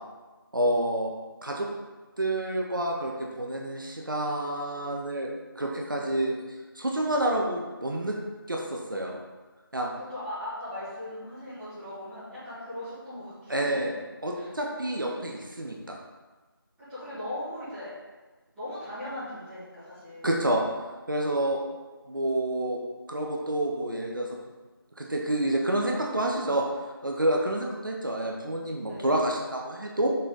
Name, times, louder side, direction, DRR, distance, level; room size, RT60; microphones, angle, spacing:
voice 1, 0.5-1.1 1.4-1.7 2.2-5.3 5.6-6.3 6.7-8.2 8.5-9.2 9.7-9.9 13.5-13.9 14.2-16.0 20.2-20.6 21.1-21.6 22.1-22.8 23.1-24.3 25.0-26.6 27.0-30.1, right 1 dB, 60° right, 0 dB, 0.9 m, -28 dB
voice 2, 9.9-13.9 14.3-14.6 16.8-17.9 18.5-20.3 28.8-29.2, left 1 dB, ahead, -20 dB, 1.4 m, -39 dB
6.4 x 4.1 x 4.0 m, 1.3 s
figure-of-eight pair, 165°, 12 cm